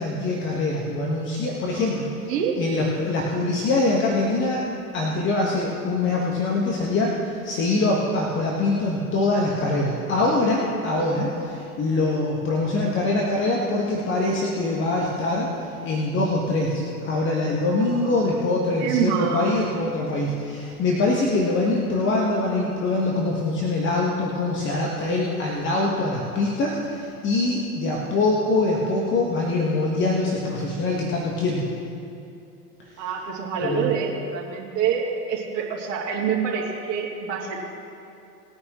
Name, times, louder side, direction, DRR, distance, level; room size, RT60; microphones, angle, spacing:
voice 1, 0.0-2.3 2.6-4.6 4.9-31.7 33.6-33.8, left 2 dB, 25° left, -2 dB, 1.5 m, -24 dB
voice 2, 1.7-2.6 17.5-18.1 18.8-19.7 33.0-37.6, right 7 dB, 40° right, -4 dB, 2.8 m, -27 dB
20.5 x 9.6 x 3.1 m, 2.7 s
figure-of-eight pair, 100°, 47 cm